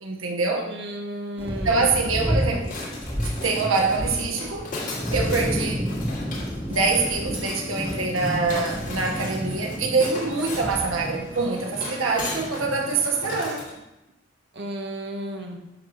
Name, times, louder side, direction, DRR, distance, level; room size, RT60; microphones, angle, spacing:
voice 1, 0.0-0.7 1.6-2.7 3.2-4.7 5.1-5.9 6.7-13.6, right 3 dB, 90° right, 1.1 m, -25 dB
voice 2, 0.7-1.9 14.5-15.6, right 1 dB, 60° right, 1.2 m, -33 dB
Thunder, 1.4-13.0, equal, 10° right, 1.7 m, -31 dB
sound 1, 2.6-13.8, left 2 dB, 40° left, 2.7 m, -37 dB
10.5 x 3.6 x 6.5 m
head